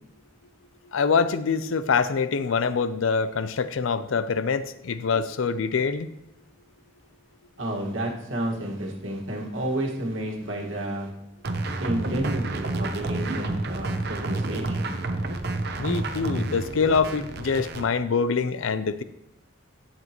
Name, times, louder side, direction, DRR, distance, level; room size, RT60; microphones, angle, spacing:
voice 1, 0.9-6.1 15.8-19.0, left 5 dB, 80° left, 14 dB, 0.5 m, -25 dB
voice 2, 7.6-11.1 11.8-15.0, right 1 dB, 75° right, 0 dB, 1.8 m, -31 dB
sound 1, 11.4-17.8, right 2 dB, 55° right, 0.8 m, -29 dB
11.0 x 7.7 x 3.0 m, 0.84 s
head